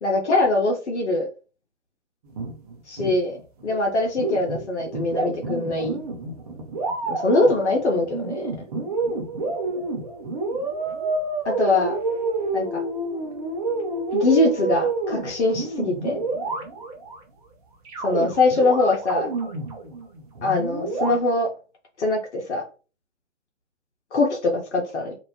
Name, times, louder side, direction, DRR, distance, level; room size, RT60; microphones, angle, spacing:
voice 1, 0.0-1.3 2.9-3.4 3.6-6.0 7.1-8.5 11.4-12.0 12.5-12.8 14.1-16.2 18.0-19.3 20.4-21.5 22.0-22.6 24.1-25.2, left 2 dB, 60° left, 1 dB, 0.9 m, -22 dB
sound 1, 2.3-3.7 4.0-17.2 17.9-21.2, right 3 dB, 30° right, 0.6 m, -29 dB
2.6 x 2.1 x 2.8 m, 0.34 s
figure-of-eight pair, 130°, 39 cm